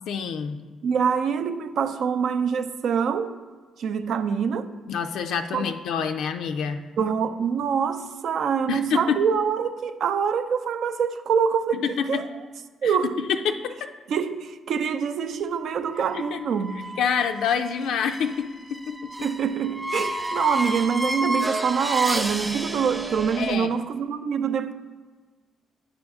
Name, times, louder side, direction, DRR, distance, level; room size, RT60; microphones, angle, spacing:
voice 1, 0.1-0.6 4.9-6.8 8.7-9.2 11.7-12.2 12.8-13.9 16.1-16.4 17.0-19.1 23.4-23.7, left 7 dB, 80° left, 0.4 m, -27 dB
voice 2, 0.8-3.3 3.8-4.7 5.5-5.6 7.0-11.8 12.1-12.2 12.8-13.1 14.1-16.8 19.2-24.7, right 7 dB, 65° right, 0.5 m, -25 dB
sound 1, 15.8-23.5, right 1 dB, 10° right, 0.7 m, -31 dB
8.9 x 5.2 x 3.5 m
cardioid pair, 90°, 0 cm